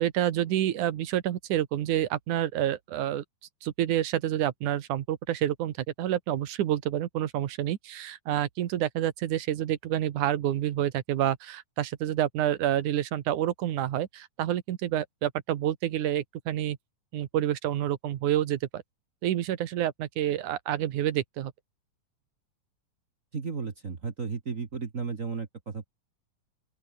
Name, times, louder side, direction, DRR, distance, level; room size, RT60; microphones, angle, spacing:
voice 1, 0.0-3.2 3.6-16.8 17.1-18.8 19.2-21.5, right 12 dB, 70° right, 2.7 m, -28 dB
voice 2, 23.3-25.9, right 5 dB, 35° right, 1.3 m, -34 dB
open air
omnidirectional pair, 3.8 m